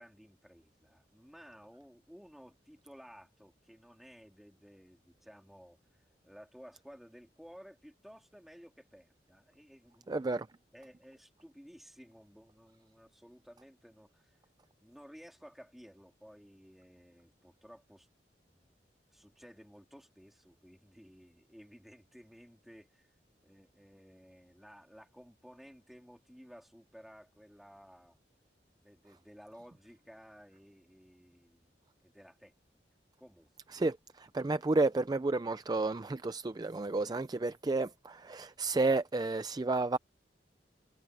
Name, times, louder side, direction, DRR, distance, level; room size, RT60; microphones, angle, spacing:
voice 1, 0.0-5.8 6.2-10.4 10.7-14.4 14.8-18.1 18.5-18.8 19.1-23.1 23.4-28.2 28.8-31.7 32.0-32.5 33.2-33.5, equal, ahead, 3.4 m, -56 dB
voice 2, 10.1-10.4 33.7-40.0, right 3 dB, 25° right, 0.4 m, -31 dB
head